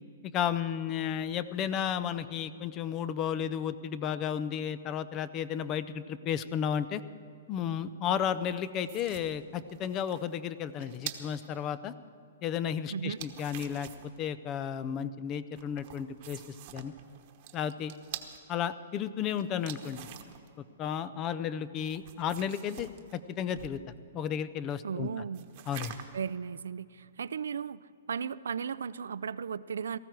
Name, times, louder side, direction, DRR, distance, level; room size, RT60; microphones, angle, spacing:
voice 1, 0.3-7.0 7.5-11.9 12.4-13.9 14.2-16.4 16.7-16.9 17.5-17.9 18.5-20.1 20.8-23.8 24.1-25.1 25.7-25.9, left 8 dB, 25° left, 15 dB, 0.5 m, -33 dB
sound 1, 8.4-11.5 13.0-14.2 15.6-18.4 19.4-20.5 21.8-23.8 25.3-26.3, right 12 dB, 40° right, 1.1 m, -46 dB
voice 2, 12.9-13.2 24.8-25.5 26.1-27.8 28.1-30.0, right 7 dB, 90° right, 17 dB, 0.4 m, -35 dB
18.5 x 14.5 x 4.6 m, 2.5 s
hypercardioid pair, 155°, 0 cm